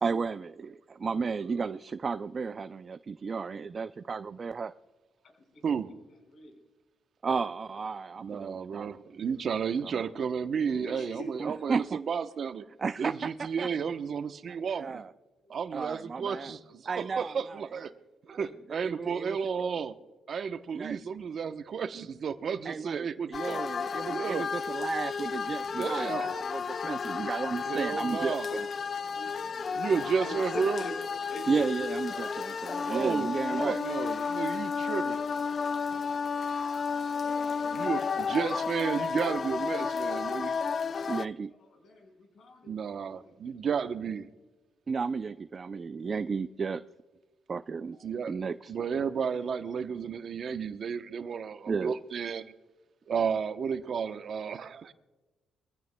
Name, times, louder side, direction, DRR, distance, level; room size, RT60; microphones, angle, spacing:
voice 1, 0.0-4.7 7.2-9.0 9.8-10.0 11.4-12.0 12.8-13.1 13.4-13.7 14.7-15.1 15.7-16.5 16.9-17.8 18.4-19.4 20.7-21.0 22.7-28.7 31.5-33.8 41.1-41.5 44.9-46.8 47.5-48.0 48.3-48.7 51.7-51.9, right 5 dB, 40° right, 11 dB, 0.4 m, -33 dB
voice 2, 5.5-6.0 6.3-6.6 8.4-8.8 9.8-9.9 10.6-11.8 15.4-15.5 18.4-18.5 29.1-30.9 31.3-32.3 41.6-42.7 43.5-43.6 47.9-48.2 48.5-48.6, left 1 dB, 60° left, 3 dB, 4.8 m, -45 dB
voice 3, 8.2-12.6 13.0-15.0 15.5-17.9 18.3-19.9 20.3-23.6 24.1-24.5 25.8-26.3 27.7-28.5 29.7-30.8 32.9-35.2 37.7-40.5 42.6-44.3 48.0-48.4 48.7-52.5 53.1-54.9, right 6 dB, 55° right, 9 dB, 0.9 m, -32 dB
sound 1, 23.3-41.3, left 5 dB, 45° left, 0.4 m, -32 dB
23.0 x 15.5 x 2.2 m, 1.2 s
cardioid pair, 90°, 0 cm